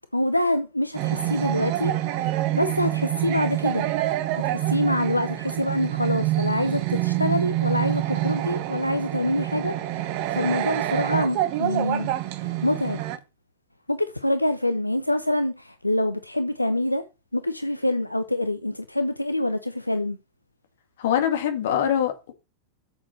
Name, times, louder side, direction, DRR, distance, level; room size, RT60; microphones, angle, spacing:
voice 1, 0.1-3.9 4.3-9.8 10.3-12.1 12.4-13.0 13.9-17.0 17.3-20.2, left 1 dB, 85° left, 0.6 m, -26 dB
sound 1, 0.9-13.2, right 14 dB, 45° right, 1.0 m, -26 dB
voice 2, 21.0-22.3, left 9 dB, 60° left, 2.1 m, -23 dB
8.9 x 7.6 x 4.3 m
figure-of-eight pair, 90°, 0 cm